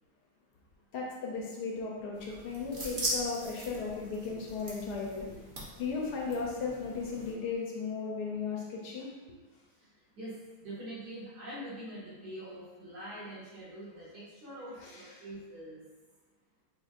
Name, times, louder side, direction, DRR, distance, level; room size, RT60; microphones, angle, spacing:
voice 1, 0.9-5.4 5.8-9.1 14.8-15.1, left 4 dB, 70° left, -2 dB, 1.0 m, -36 dB
sound 1, 2.1-7.3, right 1 dB, 75° right, 0.4 m, -40 dB
voice 2, 10.2-15.8, right 1 dB, 55° right, -9 dB, 2.1 m, -44 dB
5.9 x 2.6 x 2.4 m, 1.3 s
omnidirectional pair, 2.2 m